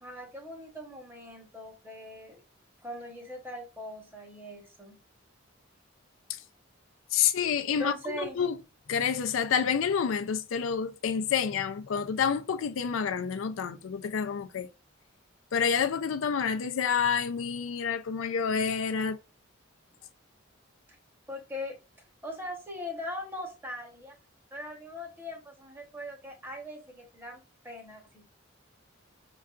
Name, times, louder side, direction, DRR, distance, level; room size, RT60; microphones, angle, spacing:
voice 1, 0.0-2.4 2.8-5.0 7.7-8.4 21.3-21.8 22.2-24.2 24.5-28.3, left 1 dB, 10° right, 1.0 m, -40 dB
voice 2, 7.1-8.6 8.9-14.7 15.5-19.2, left 7 dB, 80° left, 0.4 m, -28 dB
5.4 x 2.3 x 2.4 m
head